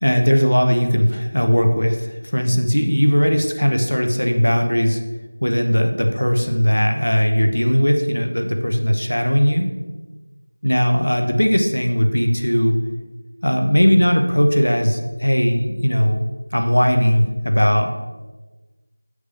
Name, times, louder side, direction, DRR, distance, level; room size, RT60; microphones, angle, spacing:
voice 1, 0.0-5.0 5.4-9.7 10.6-12.8 13.4-16.2 16.5-18.0, equal, 90° left, 4 dB, 1.0 m, -18 dB
6.8 x 6.4 x 3.8 m, 1.2 s
figure-of-eight pair, 175°, 0 cm